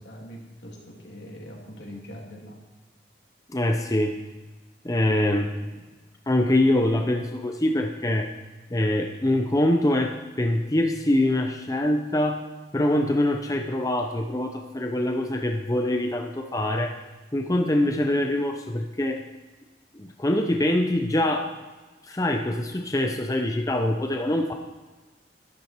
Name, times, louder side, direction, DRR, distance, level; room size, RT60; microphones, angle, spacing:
voice 1, 0.0-2.6 5.6-5.8, equal, 75° left, -2 dB, 3.0 m, -42 dB
voice 2, 3.5-4.2 4.8-5.5 6.3-8.3 8.7-12.4 12.7-17.0 17.3-19.2 19.9-21.5 22.0-24.5, left 1 dB, 20° left, 4 dB, 0.6 m, -24 dB
12.0 x 12.0 x 4.5 m, 1.2 s
head